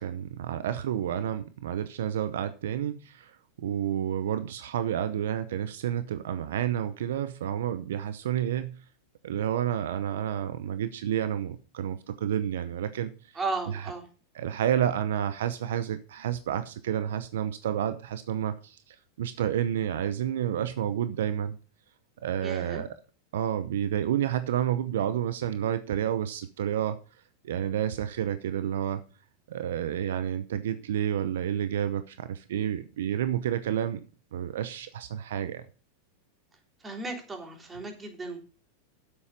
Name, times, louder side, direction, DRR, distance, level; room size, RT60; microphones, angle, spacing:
voice 1, 0.0-8.8 9.2-13.1 14.3-21.6 22.2-22.9 23.3-27.0 27.4-29.0 29.5-34.0 34.3-35.6, right 10 dB, 75° right, 12 dB, 0.7 m, -30 dB
voice 2, 13.3-14.1 22.4-22.8 36.8-38.4, right 3 dB, 20° right, 2 dB, 3.4 m, -35 dB
8.9 x 8.2 x 5.2 m, 0.37 s
hypercardioid pair, 100°, 0 cm